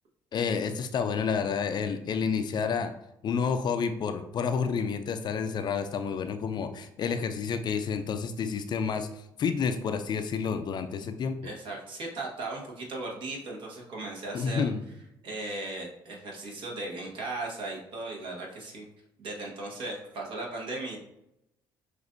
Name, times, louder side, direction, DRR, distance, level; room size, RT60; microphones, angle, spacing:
voice 1, 0.3-2.9 3.2-11.5 14.3-14.8, left 6 dB, 50° left, 8 dB, 0.4 m, -29 dB
voice 2, 11.4-14.7 15.2-18.9 19.2-21.0, right 2 dB, 60° right, -2 dB, 1.3 m, -37 dB
6.1 x 2.6 x 2.6 m, 0.84 s
supercardioid pair, 75°, 10 cm